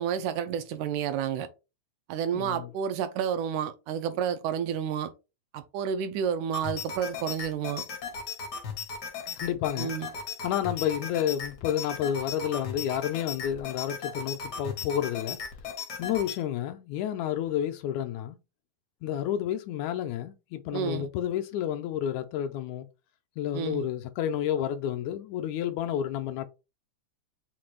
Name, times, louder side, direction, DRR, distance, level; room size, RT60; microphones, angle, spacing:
voice 1, 0.0-1.5 2.1-5.1 5.5-7.8 9.8-10.1 20.7-21.1 23.5-23.9, right 8 dB, 80° right, 2.0 m, -30 dB
voice 2, 2.3-2.7 9.4-9.9 10.4-15.4 16.0-18.4 19.0-22.9 23.4-26.5, left 10 dB, 80° left, 1.8 m, -30 dB
sound 1, 6.5-16.4, left 5 dB, 65° left, 1.0 m, -37 dB
5.9 x 2.3 x 3.1 m
omnidirectional pair, 3.5 m